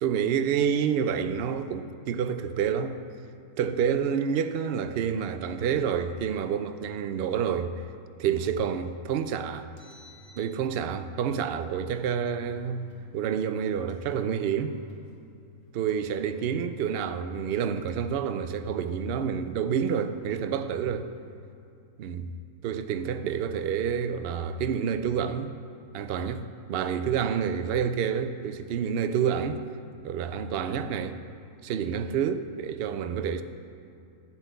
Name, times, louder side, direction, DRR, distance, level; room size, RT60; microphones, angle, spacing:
voice 1, 0.0-3.0 3.6-7.7 8.2-9.7 10.4-12.9 13.1-14.8 15.7-21.1 22.0-22.4 22.6-25.5 25.9-29.6 30.0-31.2 31.6-33.4, right 7 dB, 65° right, 0.6 m, -28 dB
Engine, 9.8-11.1 11.9-13.1 13.9-15.2 15.9-17.2 17.9-19.2 19.9-21.1, right 2 dB, 60° left, 1.6 m, -49 dB
11.5 x 4.5 x 8.0 m
omnidirectional pair, 1.5 m